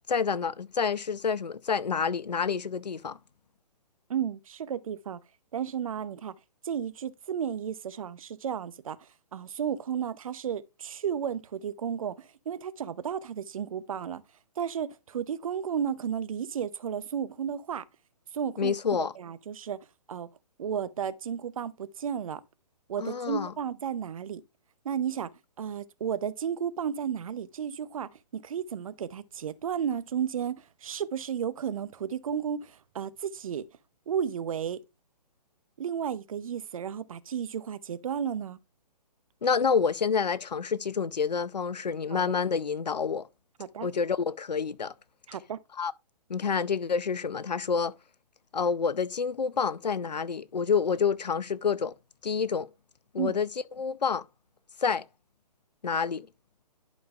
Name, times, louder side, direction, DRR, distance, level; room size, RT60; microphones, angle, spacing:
voice 1, 0.1-3.2 18.6-19.1 23.0-23.5 39.4-43.3 43.8-44.9 45.8-45.9 46.3-47.9 48.5-51.9 52.2-52.7 53.1-53.5 53.8-54.2 54.8-55.0 55.8-56.3, left 6 dB, 80° left, 0.6 m, -28 dB
voice 2, 4.1-5.2 5.5-6.4 6.6-9.0 9.3-14.2 14.6-17.8 18.3-18.8 19.1-19.8 20.1-20.3 20.6-22.4 22.9-24.4 24.8-25.3 25.6-33.6 34.1-34.8 35.8-38.6 42.1-42.3 43.6-43.9 45.3-45.6 53.2-53.4, right 8 dB, 55° right, 0.7 m, -33 dB
11.5 x 5.3 x 2.4 m
figure-of-eight pair, 135°, 21 cm